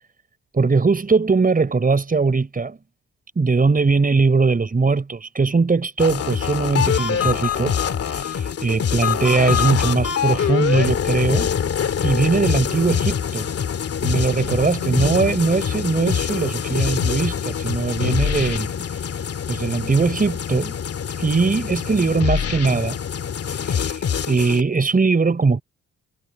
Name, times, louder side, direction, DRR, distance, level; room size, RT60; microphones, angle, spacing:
voice 1, 0.5-2.8 3.4-7.8 8.0-11.5 12.0-13.5 14.0-18.7 19.5-20.8 21.2-23.0 23.6-25.6, right 4 dB, 30° right, 6.2 m, -20 dB
sound 1, 6.0-24.6, left 8 dB, 50° left, 2.4 m, -24 dB
sound 2, 6.5-6.9 10.0-11.9 14.0-15.7 17.7-20.0, left 5 dB, 35° left, 4.2 m, -41 dB
cardioid pair, 90°, 30 cm